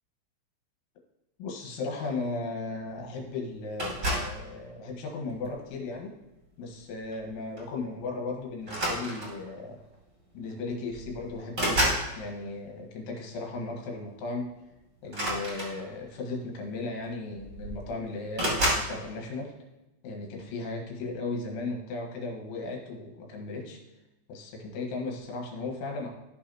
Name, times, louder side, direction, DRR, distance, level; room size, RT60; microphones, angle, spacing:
voice 1, 1.4-6.2 6.6-9.8 10.4-14.5 15.0-19.5 20.0-23.8 24.3-26.1, left 3 dB, 75° left, 0 dB, 3.6 m, -36 dB
sound 1, 3.8-4.4 5.3-5.6 7.1-7.3 7.6-7.7 8.6-9.5 10.5-10.6 10.9-12.1 15.0-16.1 17.0-17.1 17.4-17.9 18.3-18.9, right 1 dB, 30° right, 1.5 m, -29 dB
14.5 x 5.8 x 2.9 m, 1.0 s
omnidirectional pair, 6.0 m